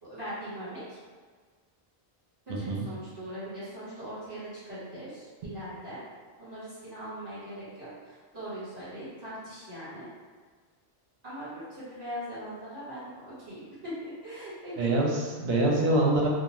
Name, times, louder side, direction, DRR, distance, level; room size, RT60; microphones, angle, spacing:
voice 1, 0.0-1.0 2.5-6.0 6.4-10.1 11.2-15.0 15.6-15.7, equal, 40° right, -11 dB, 1.3 m, -40 dB
voice 2, 2.5-2.8 14.8-16.3, right 2 dB, 75° right, -1 dB, 0.8 m, -25 dB
2.3 x 2.2 x 3.0 m, 1.5 s
omnidirectional pair, 1.1 m